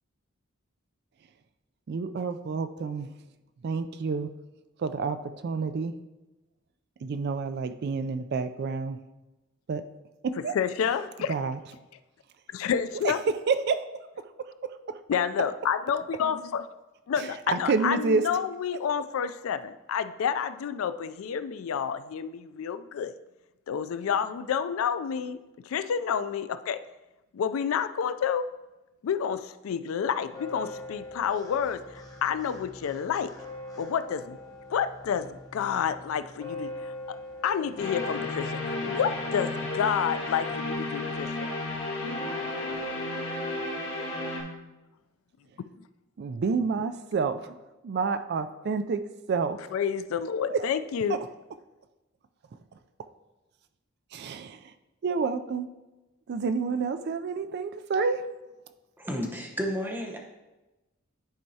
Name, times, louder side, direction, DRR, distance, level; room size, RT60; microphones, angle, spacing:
voice 1, 1.9-3.1 3.6-4.3 4.8-5.9 7.0-9.0 9.7-9.8 10.2-10.5 11.3-11.6 13.0-13.8 14.2-15.0 17.5-18.2 46.2-47.6 47.8-49.0 49.3-49.7 50.5-50.6 51.1-51.2 54.1-54.7 55.0-55.7 56.3-58.2, right 4 dB, 55° right, 11 dB, 0.4 m, -29 dB
voice 2, 10.4-11.3 12.5-13.2 15.1-16.7 17.1-23.1 23.7-26.8 27.3-28.5 29.0-33.3 33.8-34.4 34.7-37.2 37.4-41.5 49.7-51.2, left 7 dB, 90° left, 12 dB, 0.3 m, -29 dB
sound 1, 30.3-40.7, left 2 dB, 20° left, 1.1 m, -44 dB
sound 2, 37.8-44.4, left 2 dB, 65° left, 2.1 m, -32 dB
voice 3, 59.0-60.2, equal, 10° right, 0 dB, 0.9 m, -31 dB
10.5 x 4.6 x 2.7 m, 1.1 s
head